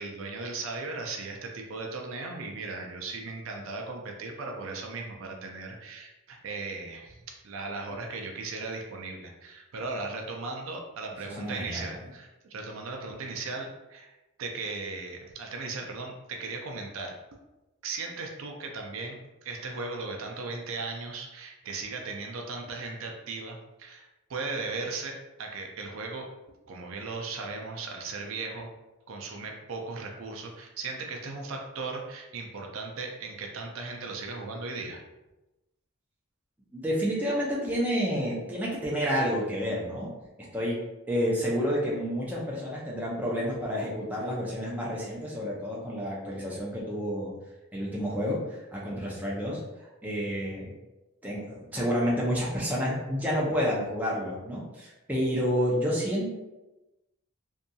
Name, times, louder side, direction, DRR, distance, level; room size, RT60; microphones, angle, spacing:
voice 1, 0.0-17.1 17.8-26.3 26.7-28.7 29.1-35.0, right 3 dB, 70° right, 1 dB, 0.4 m, -37 dB
voice 2, 11.4-11.9 36.7-40.1 40.5-40.8 41.1-47.3 47.7-49.6 50.0-50.7 51.2-56.3, equal, 5° right, -5 dB, 0.5 m, -29 dB
2.6 x 2.6 x 2.3 m, 1.0 s
head